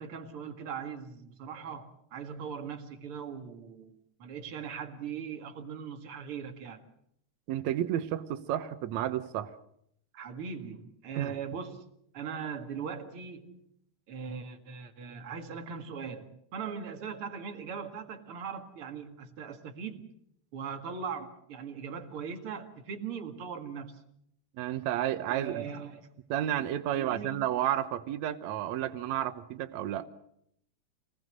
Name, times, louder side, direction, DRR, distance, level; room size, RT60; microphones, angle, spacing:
voice 1, 0.0-6.8 10.1-13.6 14.1-20.0 20.5-24.0 25.3-26.1 26.9-27.4, right 6 dB, 50° right, 5 dB, 2.6 m, -40 dB
voice 2, 7.5-9.5 11.2-11.4 24.6-25.7 26.3-30.1, right 12 dB, 75° right, 10 dB, 2.2 m, -31 dB
26.0 x 19.5 x 6.6 m, 0.71 s
omnidirectional pair, 3.4 m